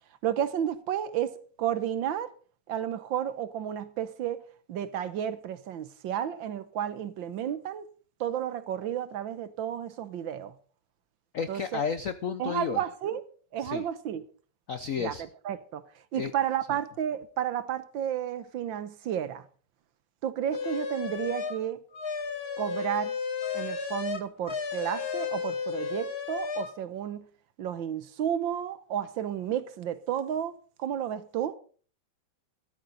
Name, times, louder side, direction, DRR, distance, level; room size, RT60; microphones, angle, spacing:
voice 1, 0.2-2.3 2.7-4.4 4.7-7.9 8.2-10.5 11.5-11.8 12.4-13.2 13.5-14.2 15.0-15.1 15.4-15.8 16.1-19.4 20.2-21.8 22.6-23.1 23.5-27.3 27.6-30.5 30.8-31.6, right 10 dB, 65° right, 1.5 m, -32 dB
voice 2, 11.3-12.8 13.6-13.8 14.7-15.2 16.2-16.3 16.7-16.8, left 6 dB, 75° left, 0.7 m, -32 dB
sound 1, 20.5-21.6 21.9-26.7, left 5 dB, 35° left, 1.1 m, -33 dB
13.5 x 13.0 x 4.0 m
omnidirectional pair, 2.4 m